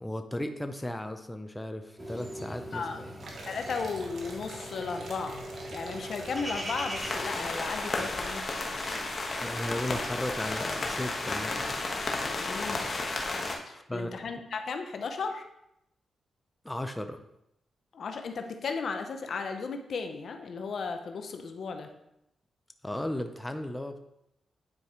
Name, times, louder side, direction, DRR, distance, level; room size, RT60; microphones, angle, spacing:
voice 1, 0.0-3.1 9.4-11.6 13.7-14.3 16.6-17.2 22.8-24.0, left 1 dB, 10° left, 7 dB, 0.6 m, -35 dB
sound 1, 2.0-7.4, equal, 15° right, 2.1 m, -40 dB
sound 2, 3.2-11.3, right 2 dB, 65° right, 1.5 m, -46 dB
voice 2, 3.4-8.6 12.3-12.8 13.7-15.5 17.9-21.9, left 4 dB, 65° left, 6 dB, 0.7 m, -35 dB
sound 3, 6.9-13.6, left 2 dB, 45° left, 1.2 m, -33 dB
9.6 x 4.7 x 3.0 m, 0.81 s
cardioid pair, 65°, 0 cm